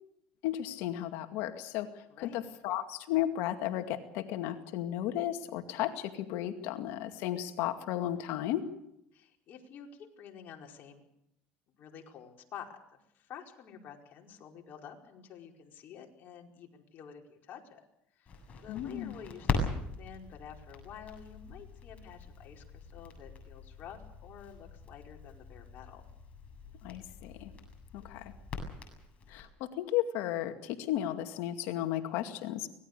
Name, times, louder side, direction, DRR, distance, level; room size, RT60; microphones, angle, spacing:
voice 1, 0.4-1.9 2.2-8.6 18.7-19.1 26.8-27.5 27.9-28.3 29.3-32.7, left 12 dB, 75° left, 7 dB, 2.2 m, -34 dB
voice 2, 2.1-2.5 9.1-11.0 11.8-12.8 13.1-17.8 18.2-18.3 18.6-26.0, left 8 dB, 50° left, 2 dB, 4.8 m, -50 dB
Crackle, 18.3-29.5, left 3 dB, 35° left, 7.7 m, -41 dB
25.0 x 19.0 x 6.8 m, 0.79 s
supercardioid pair, 110°, 4 cm